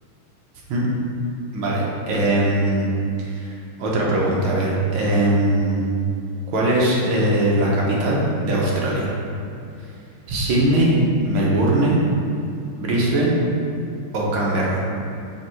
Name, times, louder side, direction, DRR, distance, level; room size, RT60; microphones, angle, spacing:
voice 1, 1.5-2.9 3.2-6.0 6.5-9.2 10.3-12.0 12.8-13.4 14.1-14.8, right 1 dB, 85° right, -4 dB, 1.8 m, -20 dB
5.8 x 3.7 x 4.5 m, 2.5 s
omnidirectional pair, 2.3 m